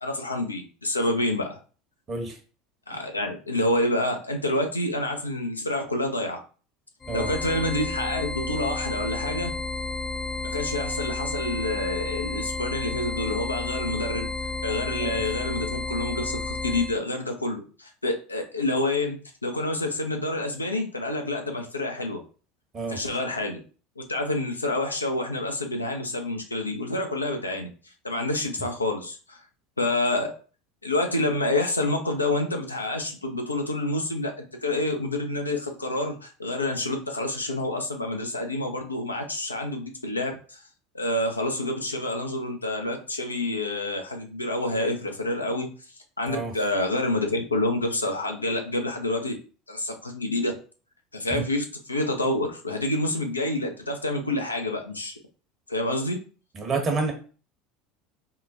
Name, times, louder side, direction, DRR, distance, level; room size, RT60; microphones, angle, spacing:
voice 1, 0.0-1.6 2.9-6.4 7.1-9.5 10.4-14.3 14.6-22.2 22.9-23.6 24.0-29.4 29.8-30.3 30.8-40.6 40.9-45.7 46.2-49.3 49.7-50.5 51.1-55.2 55.7-56.2, left 1 dB, 85° left, 3 dB, 0.4 m, -28 dB
sound 1, 7.0-17.0, left 3 dB, 20° left, 0.4 m, -31 dB
voice 2, 56.5-57.1, right 3 dB, 35° right, 2 dB, 1.0 m, -28 dB
3.7 x 2.1 x 2.4 m, 0.38 s
figure-of-eight pair, 70°, 0 cm